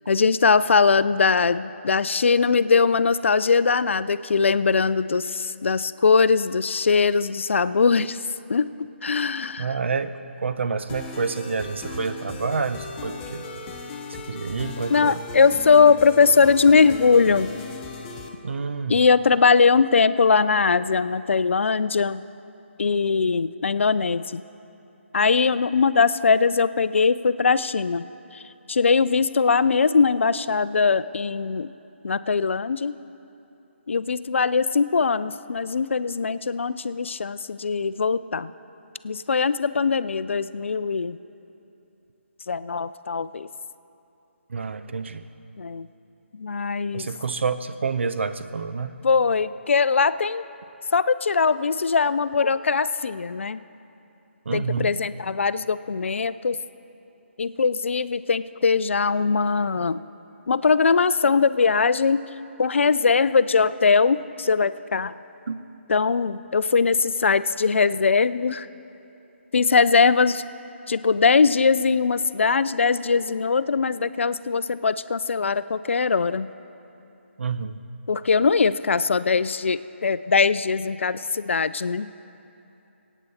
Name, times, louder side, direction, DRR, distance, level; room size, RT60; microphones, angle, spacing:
voice 1, 0.1-8.2 8.5-8.7 9.0-9.7 14.9-17.5 18.9-22.2 22.8-24.4 25.1-28.0 28.3-28.4 28.7-31.7 32.0-33.0 33.9-38.5 39.0-41.2 42.5-43.5 45.6-45.9 46.3-47.1 49.0-50.4 50.9-53.6 54.5-56.6 57.4-60.0 60.5-62.2 62.6-65.1 65.9-68.7 69.5-70.4 70.9-76.5 78.1-82.1, left 5 dB, 70° left, 16 dB, 0.4 m, -21 dB
voice 2, 9.6-10.1 10.4-13.5 14.1-15.2 18.4-19.0 44.5-45.2 46.9-48.9 54.5-54.9 65.5-65.6 77.4-77.8, right 5 dB, 65° right, 11 dB, 0.7 m, -28 dB
sound 1, 10.9-18.3, left 4 dB, 15° left, 0.7 m, -37 dB
23.5 x 9.1 x 4.2 m, 2.9 s
hypercardioid pair, 160°, 7 cm